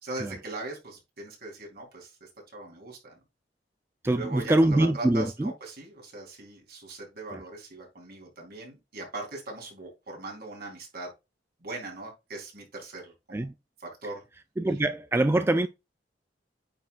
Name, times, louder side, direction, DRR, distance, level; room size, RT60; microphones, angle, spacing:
voice 1, 0.0-3.2 4.0-11.1 11.6-13.5 13.8-14.2 14.7-14.8, right 2 dB, 55° right, 3.6 m, -40 dB
voice 2, 4.0-5.5 7.3-7.4 13.3-13.5 14.6-15.7, right 1 dB, 15° right, 0.3 m, -24 dB
8.9 x 6.0 x 2.4 m
head